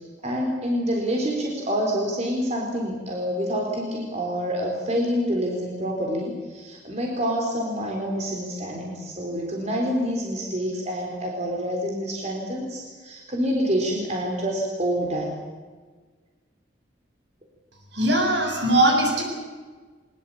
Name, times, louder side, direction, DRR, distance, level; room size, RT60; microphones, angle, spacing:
voice 1, 0.2-15.3, equal, 35° right, 0 dB, 3.8 m, -27 dB
voice 2, 17.9-19.2, right 1 dB, 70° right, 1 dB, 7.6 m, -20 dB
22.5 x 21.0 x 8.6 m, 1.4 s
head